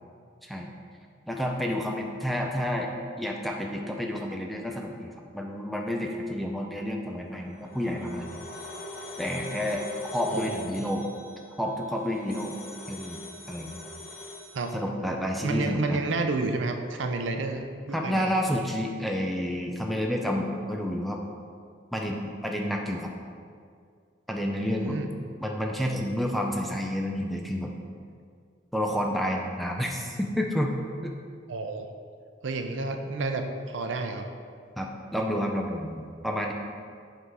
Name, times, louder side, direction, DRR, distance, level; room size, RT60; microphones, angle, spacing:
voice 1, 1.3-2.9 3.2-8.4 9.2-9.8 10.1-11.1 11.6-12.5 12.9-13.2 13.5-13.8 14.7-16.0 17.9-21.2 21.9-23.1 24.3-25.0 25.4-27.7 28.7-30.8 31.0-31.1 34.8-36.5, equal, ahead, 0 dB, 0.4 m, -30 dB
sound 1, 7.3-14.7, left 2 dB, 50° left, 0.8 m, -42 dB
voice 2, 10.3-10.8 14.5-14.7 15.4-18.4 24.7-25.1 31.5-31.9 32.4-34.3, right 3 dB, 85° right, 5 dB, 0.6 m, -30 dB
8.0 x 3.8 x 4.7 m, 2.2 s
head